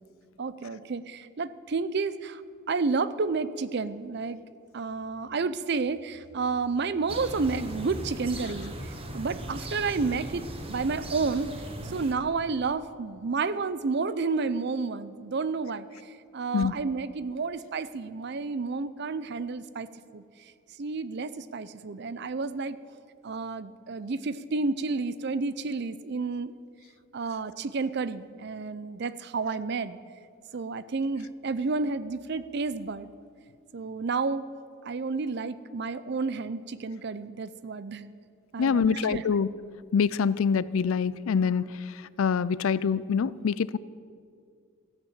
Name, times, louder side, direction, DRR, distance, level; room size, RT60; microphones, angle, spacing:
voice 1, 0.4-2.4 2.7-4.4 4.7-11.5 11.8-20.5 20.8-22.8 23.2-26.5 27.1-30.0 30.5-33.1 33.7-34.5 34.8-38.1 38.5-39.3, right 4 dB, 50° right, 15 dB, 0.5 m, -31 dB
sound 1, 7.1-12.1, right 1 dB, 25° right, 1.0 m, -38 dB
voice 2, 38.6-39.5 39.9-41.7 42.2-43.8, left 6 dB, 75° left, 18 dB, 0.4 m, -25 dB
14.0 x 9.0 x 7.4 m, 2.3 s
head